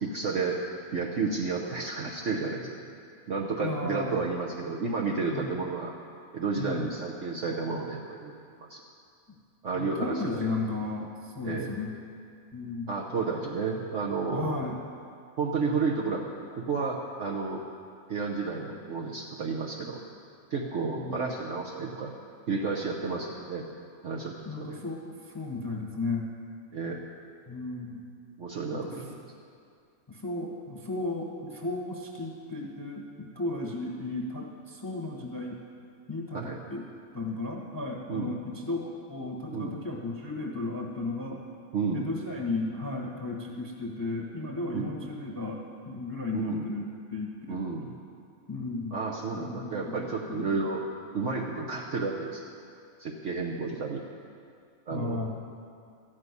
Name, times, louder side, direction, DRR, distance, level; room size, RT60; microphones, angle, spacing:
voice 1, 0.0-0.6 0.9-2.7 3.3-5.9 6.3-8.3 8.7-8.8 9.6-10.5 11.4-11.7 12.9-14.6 15.4-16.2 16.5-17.6 18.1-20.0 20.5-22.1 22.5-23.6 24.0-24.8 26.7-27.0 28.4-29.2 36.3-36.6 38.1-38.3 39.5-39.8 41.7-42.1 44.7-45.0 46.3-46.6 47.5-47.9 48.9-50.8 51.1-52.4 53.0-54.0 54.9-55.2, right 4 dB, 60° right, -2 dB, 1.3 m, -31 dB
voice 2, 3.6-4.2 5.3-5.6 6.6-6.9 9.7-11.9 12.5-12.9 14.3-14.8 20.9-21.3 24.4-26.3 27.5-28.0 28.7-29.0 30.1-35.6 36.1-36.9 37.1-41.4 41.9-47.6 48.5-49.0 49.3-49.9 50.3-50.6 51.6-51.7 54.9-55.3, left 2 dB, 15° left, 0 dB, 1.1 m, -34 dB
13.5 x 6.3 x 9.5 m, 2.3 s
omnidirectional pair, 1.5 m